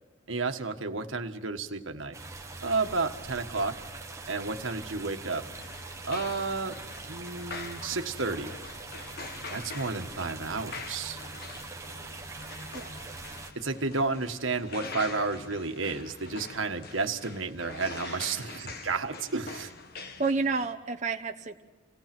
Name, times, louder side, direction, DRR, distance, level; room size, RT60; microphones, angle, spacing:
voice 1, 0.3-2.2 2.6-3.8 4.3-5.5 6.0-6.8 7.1-8.5 9.5-11.2 13.5-19.7, right 3 dB, 85° right, 6 dB, 1.5 m, -31 dB
sound 1, 2.1-13.5, right 3 dB, 15° right, 1.4 m, -43 dB
sound 2, 5.4-20.7, left 4 dB, 50° left, 1.5 m, -44 dB
voice 2, 18.0-18.7 20.2-21.6, right 4 dB, 35° right, 4 dB, 1.0 m, -31 dB
28.5 x 18.0 x 6.1 m, 1.3 s
head